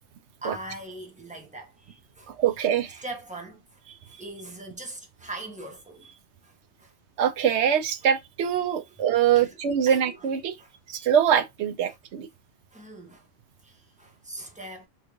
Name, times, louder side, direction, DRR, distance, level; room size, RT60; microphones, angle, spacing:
voice 1, 0.4-2.4 3.0-6.9 9.3-9.6 9.9-10.2 10.6-10.8 11.9-12.0 12.7-13.3 13.6-14.9, right 2 dB, 5° right, 0.8 m, -41 dB
voice 2, 2.3-3.0 7.2-10.6 10.9-12.3, right 9 dB, 65° right, 0.9 m, -23 dB
3.4 x 3.2 x 2.3 m
omnidirectional pair, 1.3 m